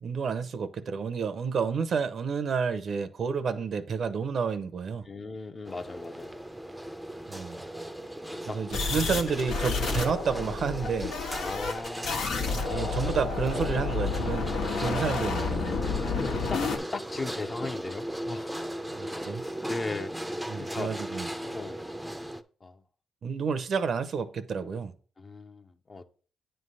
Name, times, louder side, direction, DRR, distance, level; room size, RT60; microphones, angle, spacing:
voice 1, 0.0-5.1 7.3-7.6 8.5-11.2 12.6-14.5 14.8-15.8 19.0-19.4 20.5-21.3 23.2-24.9, right 5 dB, 60° right, 0.7 m, -30 dB
voice 2, 5.0-6.5 7.9-8.1 8.5-9.1 11.3-12.4 14.8-15.3 15.6-15.8 16.2-16.6 16.9-18.5 19.7-20.1 20.6-20.9 21.4-21.8 22.6-22.8 25.2-26.1, left 3 dB, 35° left, 0.7 m, -38 dB
sound 1, 5.6-22.4, right 1 dB, 5° right, 0.6 m, -37 dB
sound 2, 8.7-16.8, left 4 dB, 85° left, 1.3 m, -30 dB
9.1 x 3.3 x 5.5 m
cardioid pair, 80°, 0 cm